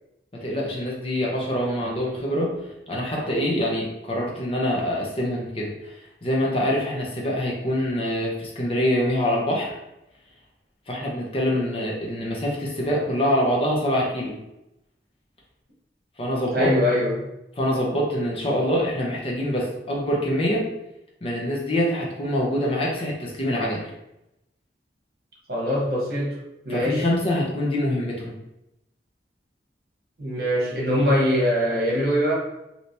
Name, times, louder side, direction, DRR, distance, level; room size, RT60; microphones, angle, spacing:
voice 1, 0.3-2.5 2.9-6.0 6.2-9.8 10.9-14.4 16.2-16.7 17.6-20.7 21.2-23.9 26.7-28.3, equal, 30° left, -3 dB, 0.6 m, -25 dB
voice 2, 16.5-17.2 25.5-26.3 26.6-27.0 30.2-32.3, equal, 55° right, -4 dB, 1.1 m, -22 dB
3.2 x 2.8 x 2.7 m, 0.89 s
head